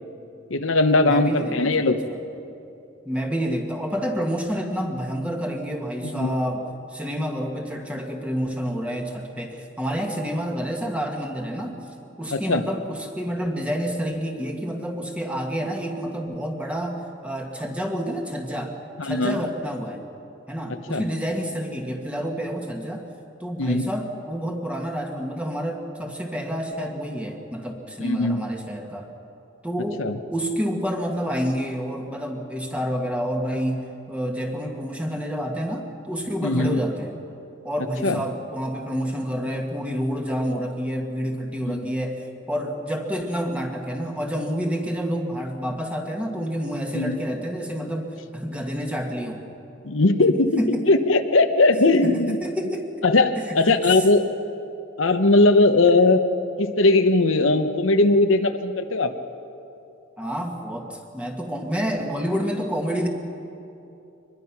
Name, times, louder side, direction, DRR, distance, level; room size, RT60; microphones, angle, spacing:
voice 1, 0.5-2.0 6.1-6.3 12.3-12.6 19.0-19.4 20.9-21.1 23.6-23.9 28.0-28.4 30.0-30.2 36.4-36.8 38.0-38.2 41.7-41.9 46.9-47.2 49.8-50.6 50.9-52.4 53.0-54.2 55.0-56.2 56.6-59.1, left 2 dB, 80° left, 7 dB, 1.0 m, -19 dB
voice 2, 1.0-1.9 3.1-11.8 12.2-18.8 19.0-20.0 20.5-23.1 23.4-29.1 29.6-37.1 37.6-49.4 50.6-50.8 52.0-52.9 53.4-54.0 60.2-63.1, equal, 5° right, 2 dB, 1.7 m, -28 dB
24.0 x 21.0 x 6.0 m, 2.8 s
head